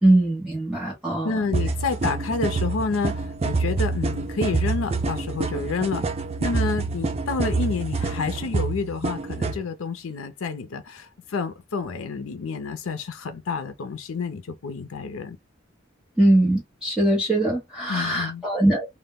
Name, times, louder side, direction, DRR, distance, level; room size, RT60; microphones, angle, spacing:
voice 1, 0.0-1.3 16.2-18.9, right 1 dB, 5° right, 0.8 m, -21 dB
voice 2, 1.2-6.1 6.4-15.4 17.9-18.4, left 4 dB, 85° left, 0.5 m, -29 dB
sound 1, 1.5-9.6, right 3 dB, 30° right, 0.3 m, -27 dB
2.2 x 2.1 x 3.4 m
head